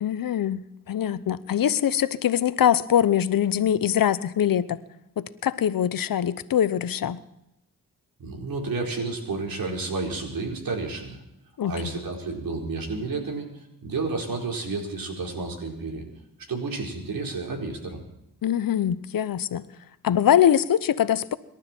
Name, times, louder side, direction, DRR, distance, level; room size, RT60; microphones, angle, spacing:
voice 1, 0.0-4.8 5.2-7.2 11.6-11.8 18.4-19.6 20.0-21.4, left 10 dB, 70° left, 15 dB, 0.9 m, -23 dB
voice 2, 8.2-11.2 11.6-16.0 16.5-18.0, right 3 dB, 75° right, 1 dB, 4.6 m, -31 dB
26.0 x 12.5 x 4.5 m, 0.87 s
cardioid pair, 65°, 35 cm